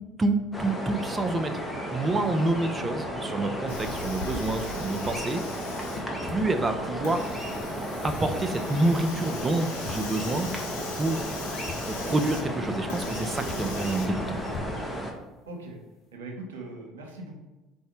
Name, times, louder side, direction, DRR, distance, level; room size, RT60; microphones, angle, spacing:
voice 1, 0.2-1.5 1.9-5.4 6.2-7.3 8.0-10.5 10.9-11.3 11.8-14.4, right 2 dB, 25° right, 7 dB, 0.5 m, -27 dB
sound 1, 0.5-15.1, equal, 5° left, 1.0 m, -34 dB
Hiss, 3.7-14.1, left 4 dB, 75° left, 0.6 m, -41 dB
sound 2, 6.1-15.0, left 4 dB, 40° left, 1.4 m, -46 dB
voice 2, 15.5-15.8 16.1-17.3, right 2 dB, 80° right, 1 dB, 0.9 m, -41 dB
4.1 x 2.7 x 4.7 m, 1.1 s
hypercardioid pair, 65°, 0 cm